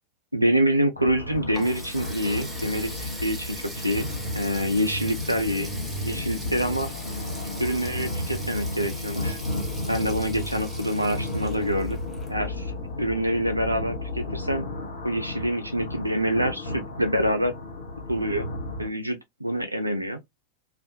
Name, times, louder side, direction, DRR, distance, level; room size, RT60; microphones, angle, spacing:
voice 1, 0.3-4.1 4.3-5.7 6.0-6.9 7.6-9.4 9.9-12.0 12.3-12.7 13.0-14.7 15.0-17.5 18.1-18.5 18.8-20.2, equal, 85° right, 0.4 m, -26 dB
sound 1, 1.0-18.9, left 2 dB, 60° left, 0.9 m, -33 dB
Water tap faucet, 1.1-12.8, right 1 dB, 5° right, 0.8 m, -41 dB
2.4 x 2.1 x 2.7 m
figure-of-eight pair, 90°, 0 cm